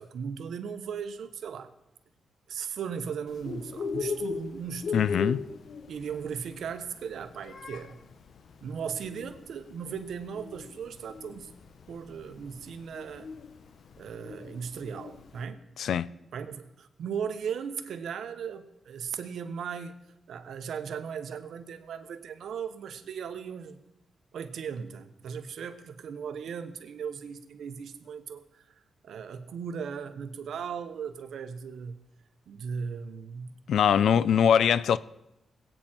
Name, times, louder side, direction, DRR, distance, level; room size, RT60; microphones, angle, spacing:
voice 1, 0.0-1.7 2.5-5.3 5.9-8.0 8.6-11.5 11.9-13.3 14.0-15.6 16.3-20.0 20.3-23.8 24.3-28.7 29.0-32.0 32.5-33.5 33.9-34.3, right 7 dB, 80° right, 1.1 m, -37 dB
Bird, 3.3-15.4, left 5 dB, 65° left, 1.1 m, -38 dB
voice 2, 4.9-5.4 15.8-16.1 33.7-35.0, left 8 dB, 80° left, 0.5 m, -22 dB
21.0 x 9.0 x 4.5 m
cardioid pair, 95°, 0 cm